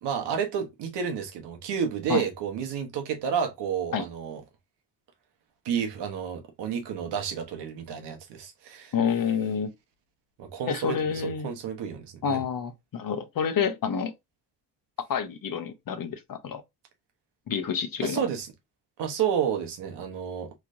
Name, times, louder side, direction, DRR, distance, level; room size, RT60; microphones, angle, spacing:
voice 1, 0.0-4.4 5.6-8.9 10.4-12.4 18.0-18.5 19.0-20.5, right 7 dB, 85° right, 1.1 m, -30 dB
voice 2, 8.9-9.7 10.7-11.5 12.2-14.1 15.1-16.6 17.5-18.2, left 7 dB, 55° left, 1.0 m, -28 dB
3.3 x 3.1 x 2.6 m
supercardioid pair, 65°, 41 cm